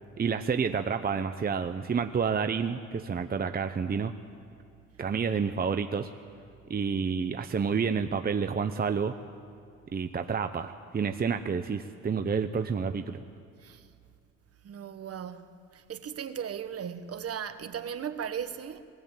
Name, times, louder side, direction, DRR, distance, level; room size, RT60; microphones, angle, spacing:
voice 1, 0.2-4.1 5.0-6.1 6.7-9.1 9.9-13.2, right 6 dB, 30° right, 0.8 m, -29 dB
voice 2, 14.6-18.8, right 8 dB, 55° right, 1.3 m, -37 dB
20.5 x 14.5 x 9.1 m
cardioid pair, 90°, 30 cm